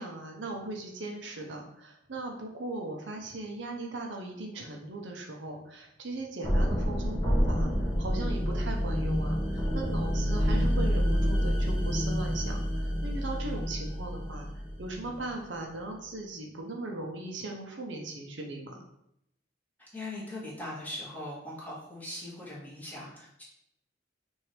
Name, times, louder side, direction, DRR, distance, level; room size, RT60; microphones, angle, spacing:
voice 1, 0.0-14.5 14.8-18.8, right 2 dB, 75° right, 1 dB, 0.8 m, -38 dB
sound 1, 6.4-15.3, equal, 25° left, 1.0 m, -28 dB
voice 2, 19.8-23.4, left 1 dB, 10° left, -7 dB, 1.6 m, -40 dB
6.0 x 2.7 x 3.3 m, 0.77 s
head